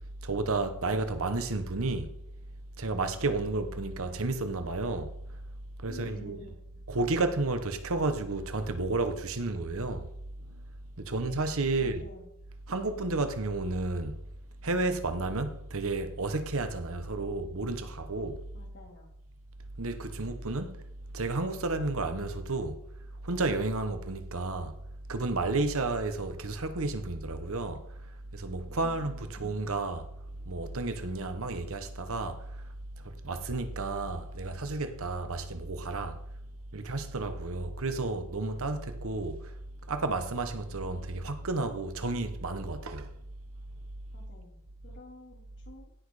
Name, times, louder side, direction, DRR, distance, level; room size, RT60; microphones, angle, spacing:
voice 1, 0.2-2.2 2.8-5.4 5.8-6.4 6.9-10.1 10.5-10.6 11.0-12.1 12.7-14.2 14.6-18.5 19.8-20.8 21.1-22.8 23.2-24.7 25.1-30.1 30.4-32.6 33.0-36.2 36.7-39.5 39.8-43.1, right 2 dB, 65° right, 1.2 m, -32 dB
voice 2, 5.9-6.6 11.0-11.2 11.8-12.3 18.5-19.1 28.7-29.3 44.1-45.9, left 1 dB, 55° left, 3.7 m, -51 dB
17.0 x 6.4 x 5.0 m
head